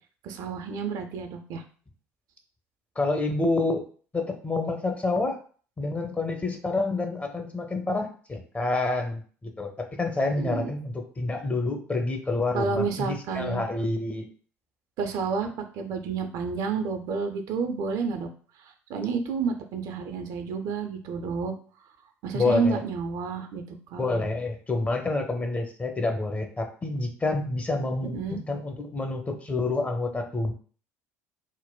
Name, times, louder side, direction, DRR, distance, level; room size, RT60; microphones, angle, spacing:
voice 1, 0.2-1.6 10.4-10.7 12.5-13.6 15.0-18.3 18.9-21.5 22.2-24.2 28.1-28.4, right 5 dB, 55° right, 6 dB, 0.4 m, -30 dB
voice 2, 3.0-3.8 4.1-5.4 5.8-14.3 22.3-22.8 24.0-30.5, left 2 dB, 20° left, 4 dB, 0.6 m, -28 dB
3.7 x 2.1 x 2.2 m, 0.42 s
figure-of-eight pair, 60°, 8 cm